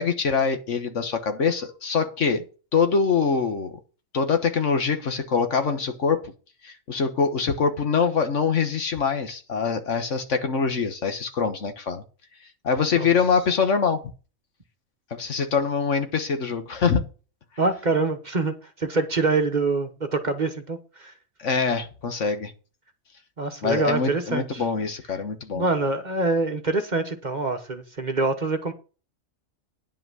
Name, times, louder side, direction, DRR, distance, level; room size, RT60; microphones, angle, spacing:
voice 1, 0.0-2.4 2.7-3.8 4.1-6.2 6.6-12.0 12.6-14.0 15.1-17.0 21.4-22.5 23.6-25.6, left 5 dB, 65° left, 1.6 m, -24 dB
voice 2, 17.6-21.1 23.4-24.6 25.5-28.7, right 3 dB, 35° right, 1.2 m, -25 dB
10.0 x 5.8 x 6.1 m
omnidirectional pair, 1.4 m